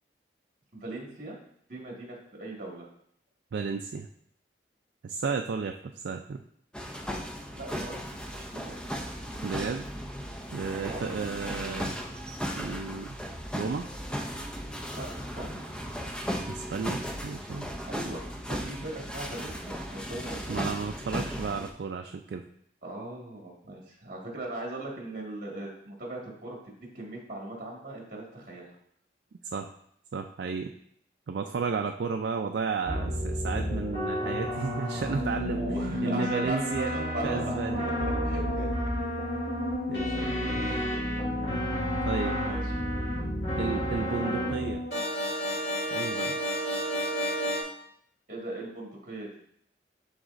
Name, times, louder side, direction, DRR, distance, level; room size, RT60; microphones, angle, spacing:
voice 1, 0.7-1.4 1.7-2.9 7.5-8.7 10.7-11.1 14.9-15.1 15.4-15.6 17.9-20.6 22.8-28.7 35.5-37.9 38.2-38.9 40.6-41.5 42.2-42.7 48.3-49.3, right 2 dB, 50° right, -2 dB, 1.7 m, -39 dB
voice 2, 3.5-4.1 5.0-6.4 9.4-9.9 10.5-11.9 12.6-13.2 13.5-13.9 16.5-17.7 20.5-22.4 29.5-29.7 30.1-30.7 31.3-35.6 36.0-37.0 37.2-37.9 39.9-40.5 42.0-42.4 43.6-44.8 45.9-46.4, right 5 dB, 70° right, 4 dB, 0.3 m, -33 dB
sound 1, 6.7-21.7, equal, 5° left, 0.5 m, -36 dB
sound 2, 32.8-47.6, equal, 65° left, 2.2 m, -30 dB
11.0 x 3.9 x 2.5 m, 0.68 s
head